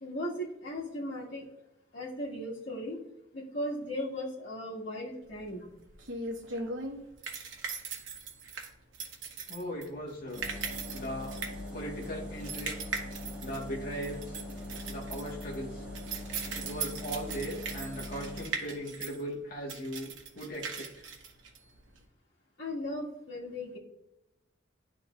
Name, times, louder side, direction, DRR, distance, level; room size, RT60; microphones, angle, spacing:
voice 1, 0.0-1.5 1.9-3.0 3.3-5.6 22.6-23.8, equal, 65° left, -7 dB, 1.7 m, -37 dB
sound 1, 5.3-22.0, right 4 dB, 85° right, 1.1 m, -40 dB
voice 2, 9.5-10.4 10.9-12.8 13.4-14.4 14.9-15.8 16.5-21.1, equal, 50° left, -2 dB, 1.6 m, -39 dB
sound 2, 10.3-18.5, left 1 dB, 10° right, 2.0 m, -42 dB
11.0 x 3.8 x 2.5 m, 0.87 s
head